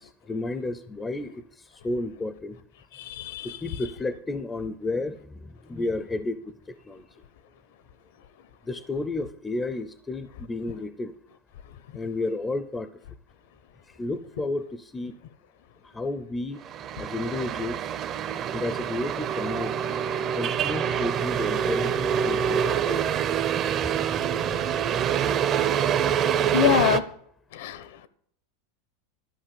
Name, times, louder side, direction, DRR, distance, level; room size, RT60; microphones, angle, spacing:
voice 1, 0.0-2.6 3.4-7.1 8.6-11.1 11.9-12.9 14.0-15.2 15.8-16.6 17.0-18.0 18.5-20.0 20.4-23.1, left 2 dB, 10° left, 0.5 m, -32 dB
voice 2, 2.9-3.6 26.5-27.0 27.5-28.1, left 11 dB, 70° left, 0.9 m, -25 dB
sound 1, 16.7-27.0, right 8 dB, 30° right, 0.6 m, -26 dB
12.5 x 5.8 x 8.5 m
supercardioid pair, 160°, 0 cm